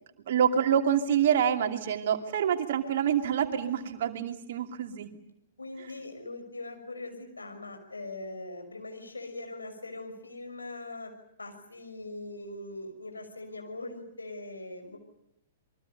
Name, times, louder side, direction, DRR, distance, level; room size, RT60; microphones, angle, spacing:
voice 1, 0.3-5.1, right 8 dB, 55° right, 6 dB, 2.8 m, -26 dB
voice 2, 5.6-11.1 11.4-15.0, left 2 dB, 80° left, 5 dB, 6.3 m, -41 dB
28.0 x 23.5 x 6.8 m, 0.78 s
figure-of-eight pair, 110°, 0 cm